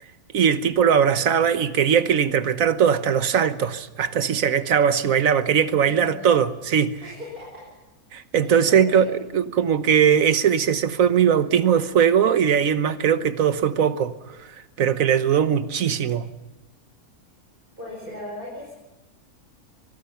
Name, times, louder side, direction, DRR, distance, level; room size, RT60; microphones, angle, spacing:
voice 1, 0.3-7.0 8.1-9.0 9.3-16.3, right 8 dB, 70° right, 1.4 m, -20 dB
voice 2, 5.8-6.3 7.0-7.7 8.4-9.0 17.8-18.7, left 1 dB, 35° right, 5.8 m, -38 dB
23.0 x 23.0 x 5.8 m
omnidirectional pair, 1.5 m